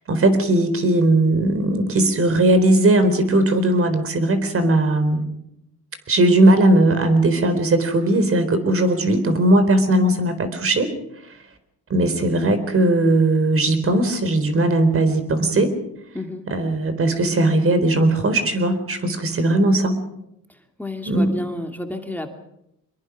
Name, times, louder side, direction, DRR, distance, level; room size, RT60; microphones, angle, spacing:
voice 1, 0.1-5.2 6.1-10.9 11.9-15.7 16.5-20.0 21.1-21.3, right 1 dB, 45° right, 10 dB, 4.1 m, -18 dB
voice 2, 16.1-16.5 20.5-22.3, left 1 dB, 5° left, 4 dB, 2.4 m, -31 dB
24.5 x 22.0 x 6.2 m, 0.81 s
cardioid pair, 90°, 30 cm